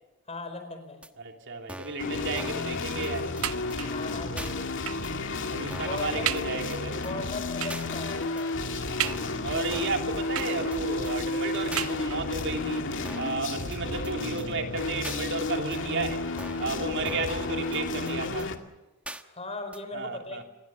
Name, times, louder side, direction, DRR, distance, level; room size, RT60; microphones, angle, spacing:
voice 1, 0.3-1.0 3.9-4.7 5.7-6.3 7.0-8.6 16.8-17.0 19.2-20.4, left 2 dB, 30° left, 4.7 m, -38 dB
sound 1, 1.0-1.1 1.7-2.0 2.4-2.7 3.0-3.1 3.4-3.5 3.7-3.8 4.4-4.5 5.0-5.1 5.7-6.0 6.4-6.5 6.7-6.8 7.0-7.1 7.7-7.9 8.4-8.5 9.0-9.4 9.7-10.0 10.4-10.5 10.7-10.8 11.0-11.1 11.7-11.9 12.4-12.5 13.1-13.4 13.7-13.8 14.0-14.1 14.4-14.5 15.0-15.2 15.7-15.8 16.4-16.7 17.1-17.4 17.7-17.8 18.1-18.2 18.4-18.5 19.1-19.2 19.7-19.8, right 1 dB, 5° right, 1.3 m, -41 dB
voice 2, 1.2-3.4 5.2-7.0 8.7-12.9 13.2-16.3 16.6-18.5 19.9-20.4, right 3 dB, 60° right, 3.0 m, -33 dB
sound 2, 2.0-18.6, left 2 dB, 60° left, 2.3 m, -32 dB
sound 3, 3.4-4.1 4.9-5.2 5.7-5.8 6.3-6.6 7.6-7.9 9.0-9.6 10.4-11.0 11.8-12.4 13.3-13.4 13.7-13.8, right 11 dB, 80° right, 0.7 m, -34 dB
28.5 x 21.5 x 7.2 m
head